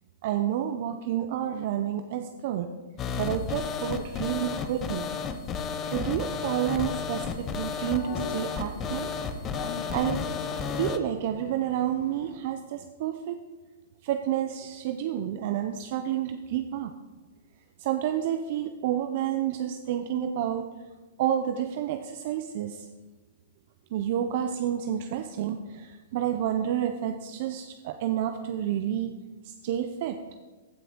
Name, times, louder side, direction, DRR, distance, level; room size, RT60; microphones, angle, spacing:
voice 1, 0.2-2.7 3.2-5.1 5.9-9.1 9.9-10.4 10.7-13.4 14.0-16.9 17.8-20.7 21.2-22.9 23.9-29.1 29.4-30.2, right 10 dB, 50° right, 7 dB, 0.5 m, -29 dB
sound 1, 3.0-11.0, left 6 dB, 20° left, 0.6 m, -32 dB
sound 2, 6.7-12.3, left 4 dB, 60° left, 1.8 m, -43 dB
14.5 x 6.0 x 3.7 m, 1.3 s
hypercardioid pair, 150°, 0 cm